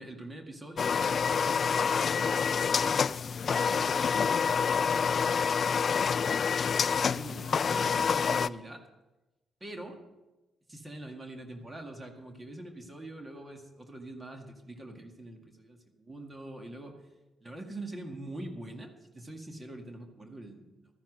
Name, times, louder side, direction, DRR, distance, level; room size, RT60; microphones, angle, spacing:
voice 1, 0.0-3.1 3.5-5.7 7.1-8.8 9.6-10.0 10.7-17.0 17.4-20.9, right 1 dB, 20° right, 3 dB, 2.0 m, -44 dB
sound 1, 0.8-8.5, left 6 dB, 45° left, 0.4 m, -27 dB
13.0 x 10.5 x 6.4 m, 1.1 s
cardioid pair, 90°, 0 cm